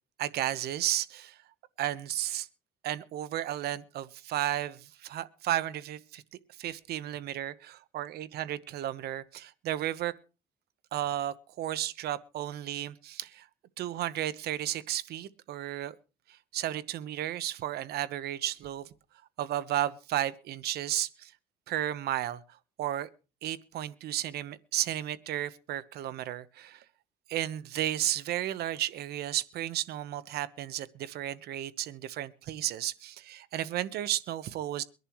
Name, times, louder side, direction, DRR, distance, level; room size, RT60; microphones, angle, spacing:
voice 1, 0.2-1.4 1.8-2.5 2.8-6.2 6.6-10.1 10.9-13.5 13.8-15.9 16.5-18.9 19.4-21.3 21.7-23.1 23.4-26.8 27.3-34.8, right 12 dB, 70° right, 1.1 m, -33 dB
23.0 x 11.0 x 3.1 m
cardioid pair, 110°, 17 cm